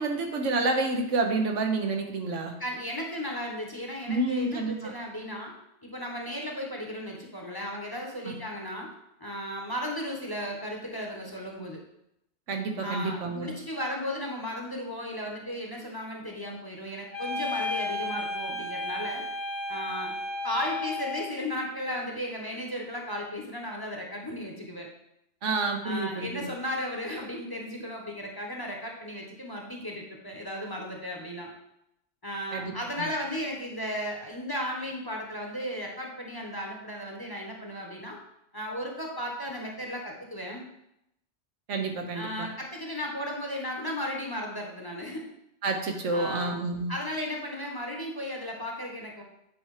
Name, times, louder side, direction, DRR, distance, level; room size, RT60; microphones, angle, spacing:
voice 1, 0.0-2.5 4.1-4.9 8.2-8.4 12.5-13.5 25.4-26.5 32.5-33.1 41.7-42.5 45.6-47.0, right 3 dB, 80° right, 3 dB, 1.4 m, -29 dB
voice 2, 2.6-5.5 5.8-8.9 9.2-11.8 12.8-19.3 19.7-20.1 20.4-24.9 25.8-31.5 32.2-38.2 38.5-40.6 42.1-45.2 46.1-46.5 46.9-49.2, equal, 20° left, 0 dB, 1.1 m, -35 dB
sound 1, 17.1-21.3, left 2 dB, 60° left, 2.2 m, -33 dB
8.5 x 4.3 x 4.8 m, 0.82 s
omnidirectional pair, 1.2 m